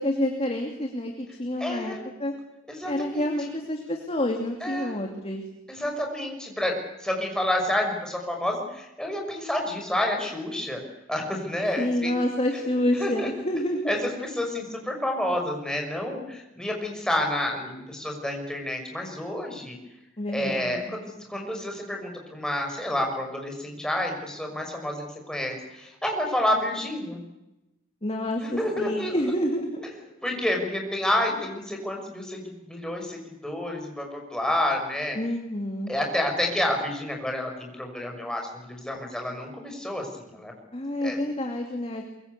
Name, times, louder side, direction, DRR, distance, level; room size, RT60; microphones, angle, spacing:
voice 1, 0.0-2.3 2.8-5.4 11.8-13.9 20.2-21.0 28.0-29.9 35.1-35.9 40.7-42.0, left 1 dB, 30° left, 3 dB, 2.7 m, -28 dB
voice 2, 1.6-2.0 2.7-3.3 4.6-4.9 5.7-10.8 11.1-12.1 12.9-13.3 13.8-19.8 20.3-27.2 28.4-29.2 30.2-35.2 35.9-40.5 41.0-41.2, left 1 dB, 5° left, 1 dB, 6.1 m, -29 dB
23.5 x 23.0 x 8.4 m, 0.96 s
head